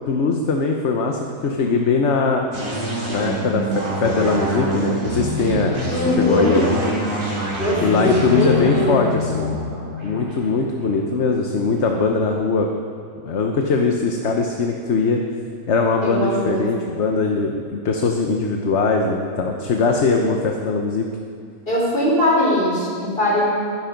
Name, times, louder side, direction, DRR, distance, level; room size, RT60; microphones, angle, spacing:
voice 1, 0.1-2.5 3.1-6.9 7.8-9.5 10.0-12.7 13.2-15.2 15.7-21.1, left 4 dB, 55° left, 2 dB, 1.2 m, -21 dB
sound 1, 2.5-12.0, left 1 dB, 60° right, 4.0 m, -26 dB
voice 2, 5.9-6.6 7.6-9.0 16.0-16.7 21.7-23.4, left 1 dB, 40° left, -4 dB, 4.5 m, -20 dB
23.0 x 10.5 x 5.3 m, 2.3 s
omnidirectional pair, 1.5 m